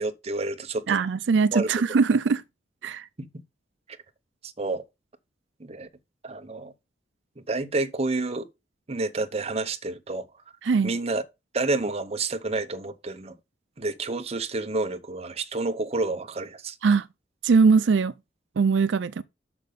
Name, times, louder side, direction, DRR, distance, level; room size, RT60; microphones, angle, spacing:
voice 1, 0.0-1.0 1.5-1.7 3.2-3.3 4.4-4.8 5.6-5.9 6.2-6.7 7.4-8.5 8.9-10.3 10.8-11.2 11.5-13.3 13.8-16.8, right 3 dB, 35° right, 0.8 m, -29 dB
voice 2, 0.9-2.4 2.8-3.1 10.6-10.9 16.8-17.1 17.4-18.1 18.6-19.2, right 5 dB, 85° right, 0.4 m, -21 dB
6.4 x 6.0 x 5.1 m
head